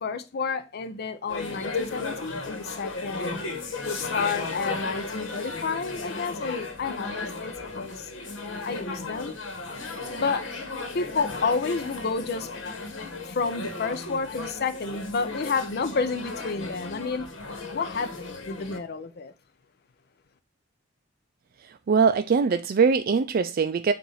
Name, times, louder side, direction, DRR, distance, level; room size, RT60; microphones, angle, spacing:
voice 1, 0.0-3.4 3.8-8.1 8.6-9.3 10.1-10.5 10.9-12.5 13.2-17.3 17.7-19.3, left 4 dB, 55° left, 0.6 m, -30 dB
sound 1, 1.3-18.8, left 3 dB, 85° left, 1.2 m, -35 dB
voice 2, 21.9-23.9, right 5 dB, 50° right, 0.4 m, -22 dB
7.1 x 2.6 x 5.4 m
head